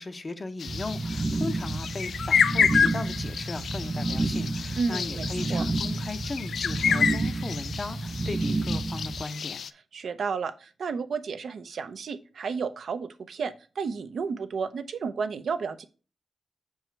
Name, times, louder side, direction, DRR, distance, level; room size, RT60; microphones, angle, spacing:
voice 1, 0.0-9.6, left 3 dB, 30° left, 0.7 m, -37 dB
sound 1, 0.6-9.7, left 6 dB, 75° left, 0.3 m, -29 dB
sound 2, 0.7-9.2, right 2 dB, 25° right, 0.4 m, -30 dB
voice 2, 4.8-5.6 9.9-15.9, right 5 dB, 70° right, 0.7 m, -32 dB
6.2 x 4.8 x 4.4 m
wide cardioid pair, 145°, 0 cm